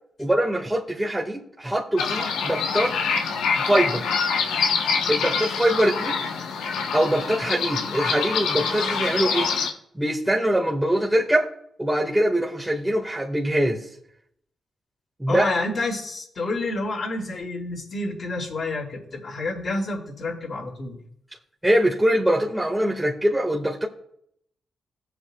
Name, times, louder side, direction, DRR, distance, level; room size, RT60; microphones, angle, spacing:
voice 1, 0.2-3.0 3.7-4.1 5.1-6.2 6.9-9.5 10.0-11.5 11.8-13.9 15.2-15.5 21.6-23.9, right 1 dB, 10° right, 1.7 m, -23 dB
sound 1, 2.0-9.7, left 5 dB, 85° left, 1.0 m, -25 dB
voice 2, 15.3-21.0, left 2 dB, 65° left, 4.7 m, -29 dB
17.5 x 7.9 x 2.3 m
supercardioid pair, 50°, 0 cm